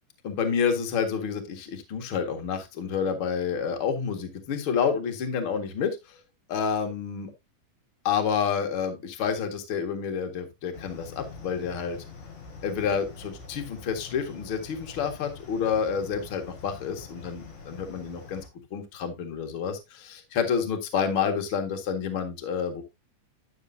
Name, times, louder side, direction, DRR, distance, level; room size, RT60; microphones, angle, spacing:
voice 1, 0.2-6.2 6.5-7.3 8.0-12.0 12.6-18.4 18.7-22.8, left 6 dB, 45° left, 5 dB, 2.2 m, -29 dB
sound 1, 10.7-18.5, left 4 dB, 85° left, 4.4 m, -45 dB
12.5 x 6.6 x 2.7 m, 0.23 s
omnidirectional pair, 3.8 m